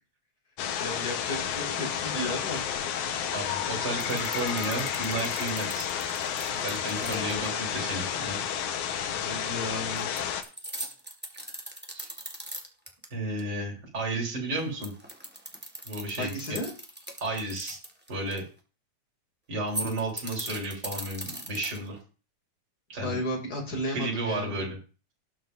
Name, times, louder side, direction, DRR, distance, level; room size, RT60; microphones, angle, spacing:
sound 1, 0.6-10.4, left 8 dB, 85° left, 2.4 m, -31 dB
voice 1, 0.8-2.7 7.0-7.6 9.1-10.1 16.2-16.7 23.0-24.6, left 1 dB, 30° left, 0 dB, 3.0 m, -34 dB
voice 2, 3.3-5.9 6.6-8.4 11.9-12.1 13.1-14.9 15.8-16.6 17.2-17.8 18.1-18.4 19.5-22.0 22.9-23.2 23.9-24.8, right 2 dB, 35° right, -2 dB, 3.9 m, -32 dB
sound 2, 4.0-7.5 10.0-13.0 13.4-13.5 14.6-18.4 19.6-22.0, right 1 dB, 10° right, 0.6 m, -39 dB
18.0 x 7.5 x 2.6 m, 0.35 s
omnidirectional pair, 3.4 m